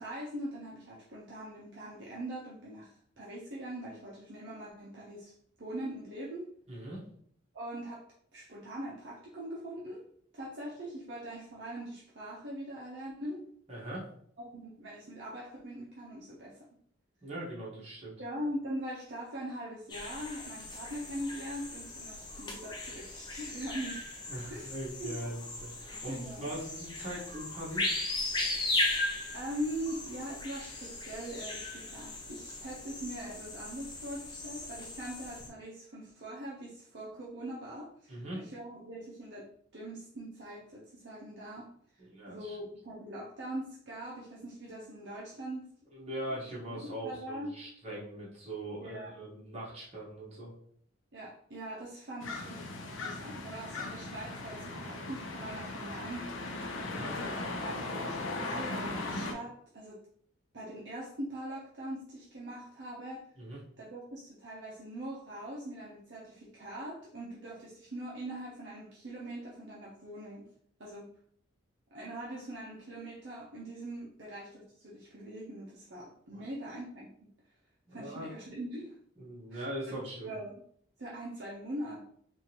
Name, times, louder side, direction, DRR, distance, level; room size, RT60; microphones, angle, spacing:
voice 1, 0.0-5.3 5.6-6.5 7.5-8.1 8.3-10.0 10.3-13.4 14.4-16.6 18.2-24.1 24.5-25.1 26.1-26.5 29.3-39.5 39.7-45.7 46.8-47.6 48.8-49.3 51.1-52.6 52.9-56.6 57.2-60.0 60.5-63.2 63.8-70.5 70.8-71.1 71.9-77.3 77.9-78.9 79.5-79.6 80.2-80.6 81.0-82.0, right 1 dB, 55° right, -5 dB, 0.7 m, -42 dB
voice 2, 6.7-7.0 13.7-14.1 17.2-18.1 24.3-28.0 38.1-38.5 42.0-42.6 45.9-50.5 56.8-57.2 63.4-63.6 76.3-76.4 77.9-78.3 79.2-80.3, right 1 dB, 30° right, -6 dB, 1.2 m, -41 dB
sound 1, 19.9-35.5, left 2 dB, 20° left, 0.5 m, -37 dB
sound 2, 52.2-59.3, left 2 dB, 70° left, 0.6 m, -38 dB
3.7 x 2.5 x 2.9 m, 0.63 s
head